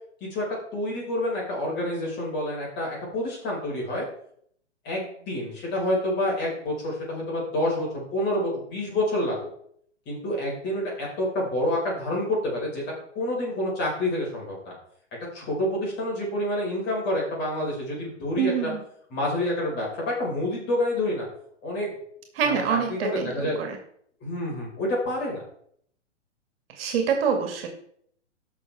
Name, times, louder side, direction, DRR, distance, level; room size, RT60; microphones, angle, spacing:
voice 1, 0.7-4.1 4.8-9.4 10.1-12.8 13.2-14.7 15.3-18.7 19.1-21.3 21.6-21.9 22.4-23.6 24.2-25.4, left 1 dB, 30° left, -3 dB, 5.4 m, -28 dB
voice 2, 18.4-18.8 22.3-23.8 26.7-27.7, right 7 dB, 50° right, 4 dB, 2.3 m, -26 dB
16.5 x 6.4 x 3.6 m, 0.65 s
hypercardioid pair, 125°, 36 cm